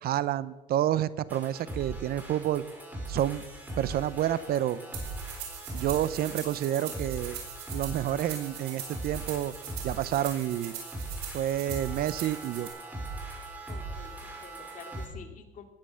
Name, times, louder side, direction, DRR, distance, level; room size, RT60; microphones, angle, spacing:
voice 1, 0.0-2.6 3.1-3.4 3.8-4.8 5.7-7.4 7.7-9.5 9.8-10.7 11.3-12.7, right 12 dB, 65° right, 17 dB, 0.7 m, -29 dB
sound 1, 1.3-15.1, right 2 dB, 10° right, 5.1 m, -40 dB
sound 2, 4.9-12.7, right 8 dB, 85° right, 4.9 m, -42 dB
voice 2, 13.7-15.7, left 6 dB, 50° left, 4 dB, 2.4 m, -48 dB
19.5 x 10.0 x 6.4 m, 1.2 s
cardioid pair, 110°, 17 cm